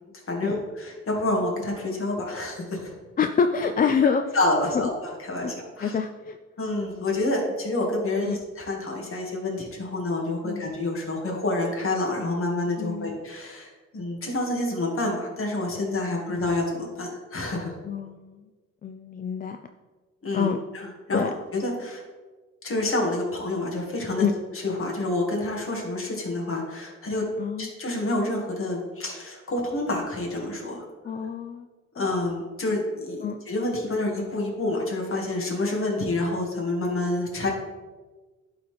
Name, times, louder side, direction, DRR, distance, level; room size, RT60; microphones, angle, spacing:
voice 1, 0.3-3.0 4.3-5.9 6.6-17.8 20.2-22.0 22.6-24.2 24.5-27.2 27.6-30.9 31.9-37.5, left 2 dB, 45° left, 0 dB, 2.0 m, -28 dB
voice 2, 3.2-4.4 4.7-4.9 5.4-5.5 5.8-6.4 8.2-8.4 10.4-10.7 12.8-13.2 16.3-16.4 17.8-18.4 18.8-19.6 20.3-20.6 21.1-21.3 24.2-24.3 27.4-27.7 31.0-31.7 32.0-32.1 33.2-33.4, left 6 dB, 30° left, 6 dB, 0.4 m, -26 dB
11.0 x 4.0 x 3.4 m, 1.3 s
cardioid pair, 90°, 30 cm